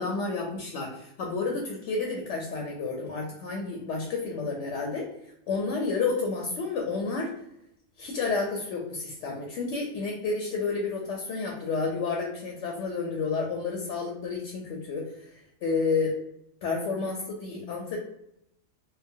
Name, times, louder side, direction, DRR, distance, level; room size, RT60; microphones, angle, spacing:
voice 1, 0.0-5.1 5.5-7.3 8.0-16.2 16.6-18.0, left 4 dB, 70° left, 0 dB, 0.8 m, -30 dB
2.9 x 2.1 x 2.6 m, 0.78 s
omnidirectional pair, 1.4 m